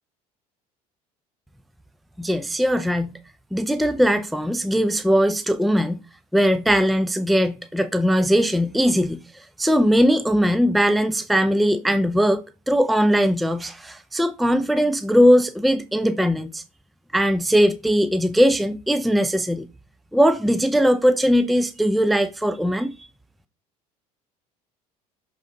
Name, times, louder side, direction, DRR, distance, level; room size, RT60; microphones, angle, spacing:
voice 1, 2.2-3.2 3.5-6.0 6.3-9.2 9.6-16.6 17.1-19.7 20.1-22.9, equal, ahead, 0.6 m, -20 dB
7.0 x 4.0 x 3.9 m
hypercardioid pair, 70°, 20 cm